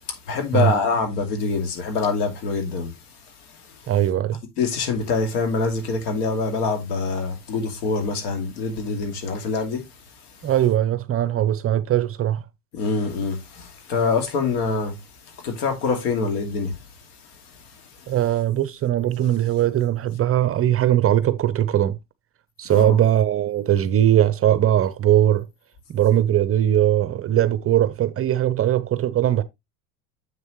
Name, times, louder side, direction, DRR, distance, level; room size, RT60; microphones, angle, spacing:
voice 1, 0.3-2.9 4.6-9.8 12.7-15.0 15.4-16.8 22.7-23.0, left 4 dB, 70° left, 2.6 m, -25 dB
voice 2, 3.9-4.4 10.4-12.4 18.1-22.0 22.6-25.5 25.9-29.4, right 11 dB, 30° right, 0.7 m, -20 dB
7.4 x 6.4 x 3.1 m
hypercardioid pair, 90°, 47 cm